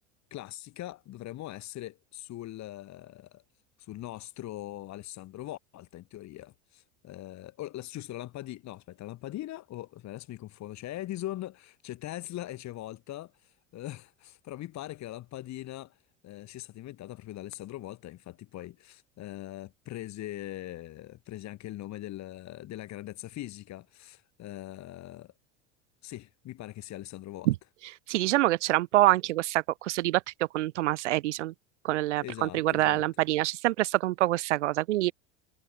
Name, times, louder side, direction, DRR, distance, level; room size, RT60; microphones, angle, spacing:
voice 1, 0.3-3.4 3.8-25.3 26.0-27.5 32.2-33.1, left 15 dB, 50° left, 5.1 m, -41 dB
voice 2, 28.1-30.2 30.5-31.5 31.8-35.1, right 16 dB, 80° right, 2.3 m, -26 dB
hypercardioid pair, 90°, 35 cm